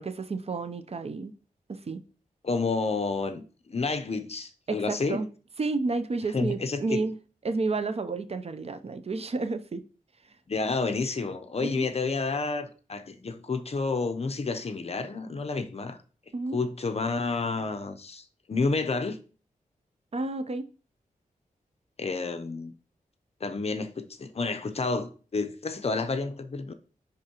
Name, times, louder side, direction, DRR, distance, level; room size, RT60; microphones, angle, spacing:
voice 1, 0.0-1.3 1.7-2.0 4.7-5.3 5.6-7.2 7.4-9.8 11.6-11.9 16.3-16.6 20.1-20.6, right 3 dB, 45° right, 0.6 m, -31 dB
voice 2, 2.4-5.2 6.3-7.0 10.5-16.0 16.5-19.2 22.0-22.7 23.4-26.7, left 4 dB, 45° left, 0.6 m, -30 dB
9.7 x 3.6 x 2.9 m
wide cardioid pair, 95°, 15 cm